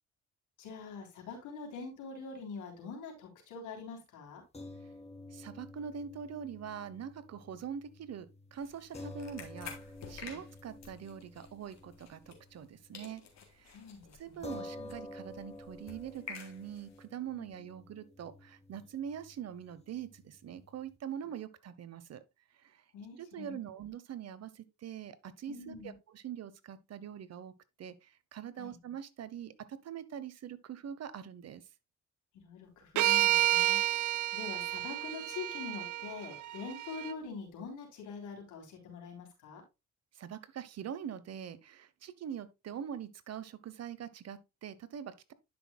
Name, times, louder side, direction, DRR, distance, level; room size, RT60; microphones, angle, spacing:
voice 1, 0.6-4.4 10.2-10.4 13.7-14.9 17.3-17.5 22.9-23.6 25.5-25.9 28.6-28.8 32.3-39.6, left 5 dB, 85° left, 3.5 m, -45 dB
sound 1, 4.5-13.1 13.4-13.5 14.4-21.0, left 1 dB, 20° left, 2.1 m, -50 dB
voice 2, 5.3-9.7 10.1-13.2 13.5-13.8 14.2-22.2 22.5-22.8 23.1-27.5 27.8-31.6 40.1-45.3, right 8 dB, 60° right, 1.0 m, -43 dB
sound 2, 8.5-12.7 12.9-17.0, left 6 dB, 60° left, 2.7 m, -51 dB
sound 3, 33.0-37.1, right 14 dB, 75° right, 0.6 m, -30 dB
11.0 x 6.2 x 2.3 m
cardioid pair, 90°, 30 cm